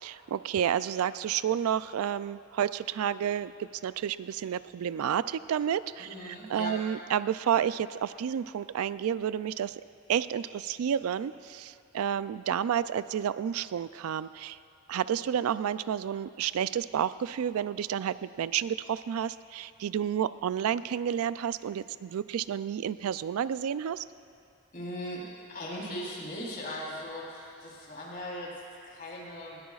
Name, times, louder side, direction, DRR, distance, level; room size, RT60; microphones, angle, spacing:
voice 1, 0.0-9.8 10.1-14.6 14.9-24.1, right 9 dB, 80° right, 15 dB, 0.3 m, -30 dB
voice 2, 6.0-6.7 24.7-29.6, equal, 40° left, -6 dB, 3.5 m, -39 dB
20.5 x 17.5 x 2.4 m, 2.7 s
head